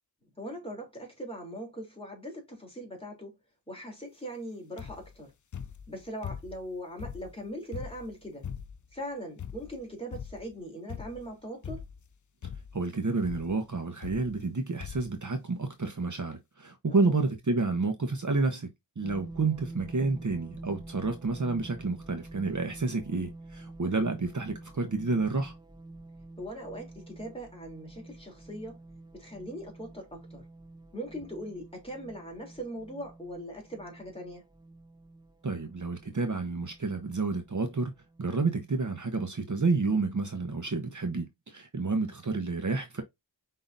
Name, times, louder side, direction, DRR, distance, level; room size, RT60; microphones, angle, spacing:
voice 1, 0.2-3.4 3.7-5.3 5.9-8.5 8.9-11.8 16.9-17.2 26.4-28.8 29.1-30.4 30.9-34.5, equal, 15° left, 2.9 m, -40 dB
sound 1, 4.8-5.2 5.5-6.7 7.0-8.9 9.4-9.8 10.1-10.5 10.9-11.3 11.6-12.1 12.4-12.9 13.2-13.5 14.0-14.5 14.8-15.2 15.9-16.0 16.2-16.3, left 8 dB, 45° left, 0.6 m, -41 dB
voice 2, 12.7-18.7 19.0-25.5 35.4-37.9 38.2-43.0, right 3 dB, 45° right, 0.9 m, -30 dB
sound 2, 19.0-38.6, right 2 dB, 10° right, 0.7 m, -48 dB
5.3 x 3.8 x 2.5 m
wide cardioid pair, 55°, 41 cm